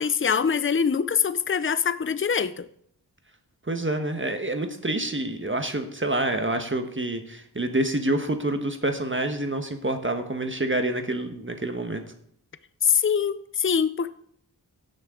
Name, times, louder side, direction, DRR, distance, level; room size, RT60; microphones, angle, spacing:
voice 1, 0.0-2.7 12.8-14.1, left 7 dB, 30° left, 0.5 m, -23 dB
voice 2, 3.7-12.0, right 1 dB, 30° right, 1.3 m, -27 dB
16.0 x 6.7 x 3.8 m
wide cardioid pair, 40°, 41 cm